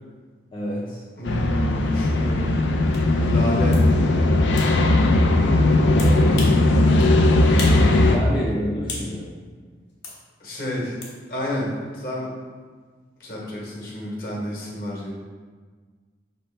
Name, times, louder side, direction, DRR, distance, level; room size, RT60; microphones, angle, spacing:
voice 1, 0.5-1.0 5.8-6.5 8.1-9.3, left 1 dB, 25° left, -6 dB, 0.5 m, -29 dB
voice 2, 1.2-2.5 3.1-3.8 10.4-11.0 11.3-12.3 13.2-15.1, equal, 50° left, -3 dB, 1.0 m, -30 dB
sound 1, 1.3-8.2, left 2 dB, 90° left, 0.4 m, -18 dB
sound 2, 2.9-3.1 3.7-3.9 4.6-4.7 6.0-6.6 7.0-7.1 7.6-7.9 8.2-9.1 10.0-10.2 11.0-11.2, left 3 dB, 70° left, 0.9 m, -35 dB
5.1 x 3.0 x 3.1 m, 1.5 s
head